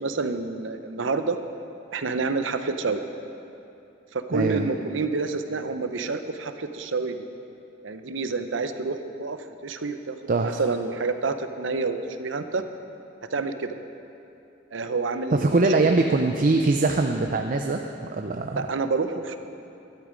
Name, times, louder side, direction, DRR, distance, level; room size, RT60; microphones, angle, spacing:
voice 1, 0.0-1.4 1.9-3.0 4.1-7.2 7.8-10.2 10.4-12.6 13.3-13.8 14.7-15.9 18.6-19.4, right 4 dB, 80° right, 9 dB, 0.7 m, -28 dB
voice 2, 4.3-4.7 10.3-10.6 15.3-17.8 18.1-18.6, right 3 dB, 45° right, 4 dB, 0.5 m, -22 dB
12.5 x 12.0 x 5.2 m, 2.8 s
head